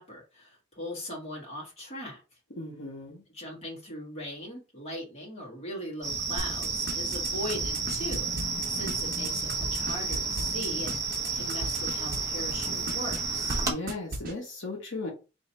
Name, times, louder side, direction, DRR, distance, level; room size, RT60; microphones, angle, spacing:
voice 1, 0.0-2.2 3.3-11.0 11.3-13.6, left 1 dB, 30° left, 1.7 m, -39 dB
voice 2, 2.6-3.2 13.7-15.1, left 2 dB, 75° left, 1.0 m, -36 dB
sound 1, 6.0-13.7, right 4 dB, 15° right, 0.7 m, -31 dB
sound 2, 6.4-12.2 12.5-13.2 13.5-13.6 13.9-14.3, right 2 dB, 45° right, 1.0 m, -36 dB
3.1 x 2.7 x 4.2 m
head